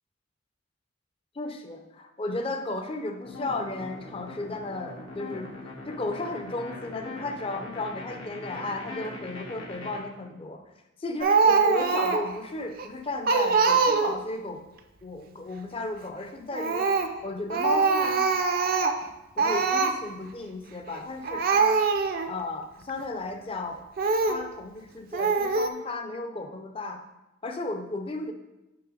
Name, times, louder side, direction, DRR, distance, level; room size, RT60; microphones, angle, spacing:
voice 1, 1.4-5.5 5.9-10.6 11.0-14.6 15.0-18.3 19.4-21.8 22.3-23.8 24.3-27.0 27.4-28.3, left 2 dB, 25° left, 5 dB, 0.5 m, -34 dB
sound 1, 3.2-10.0, left 2 dB, 90° left, 1.7 m, -40 dB
Speech, 11.2-12.4 12.8-12.9 13.3-14.3 16.5-17.2 17.5-19.1 19.4-20.0 20.9-21.0 21.2-22.3 22.9-23.0 24.0-24.4 25.1-25.7, right 4 dB, 45° right, 0.4 m, -23 dB
5.9 x 5.5 x 3.8 m, 0.98 s
head